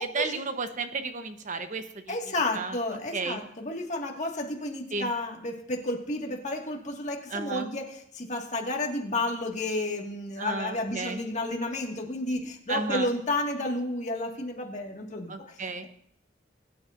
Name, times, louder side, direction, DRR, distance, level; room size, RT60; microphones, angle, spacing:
voice 1, 0.0-2.2 2.5-2.8 3.1-3.4 4.9-5.1 7.3-7.7 10.4-11.2 12.7-13.1 15.3-15.9, right 4 dB, 45° right, 8 dB, 0.9 m, -33 dB
voice 2, 2.1-15.6, left 2 dB, 40° left, 1 dB, 1.8 m, -31 dB
21.0 x 9.4 x 2.5 m, 0.67 s
head